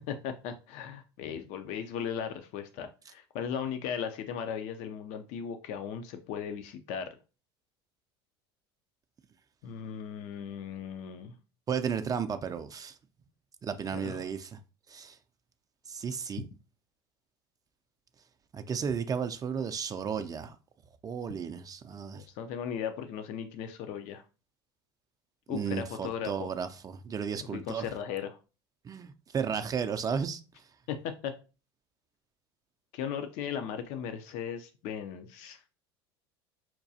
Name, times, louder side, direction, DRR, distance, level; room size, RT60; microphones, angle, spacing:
voice 1, 0.0-7.1 9.6-11.3 13.9-14.2 22.4-24.2 25.5-26.5 27.5-28.4 30.9-31.0 31.2-31.3 32.9-35.6, left 8 dB, 60° left, 0.5 m, -37 dB
voice 2, 11.7-13.0 13.6-14.6 14.9-15.2 15.9-16.4 18.5-20.6 21.0-22.3 25.5-27.8 28.8-30.4, right 6 dB, 30° right, 0.4 m, -34 dB
5.8 x 2.3 x 2.7 m
hypercardioid pair, 90°, 13 cm